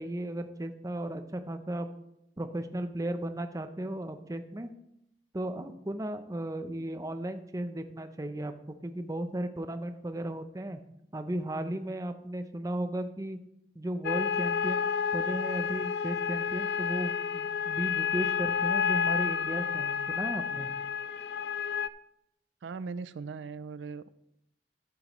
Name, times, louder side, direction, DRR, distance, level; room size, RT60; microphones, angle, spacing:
voice 1, 0.0-1.9 2.4-4.7 5.3-8.5 8.8-10.8 11.1-13.4 13.8-14.9 15.1-20.7, right 1 dB, 20° right, 8 dB, 0.6 m, -35 dB
sound 1, 14.0-21.9, left 7 dB, 60° left, 0.3 m, -30 dB
voice 2, 22.6-24.1, right 4 dB, 85° right, 16 dB, 0.4 m, -39 dB
11.5 x 8.5 x 3.1 m, 0.80 s
head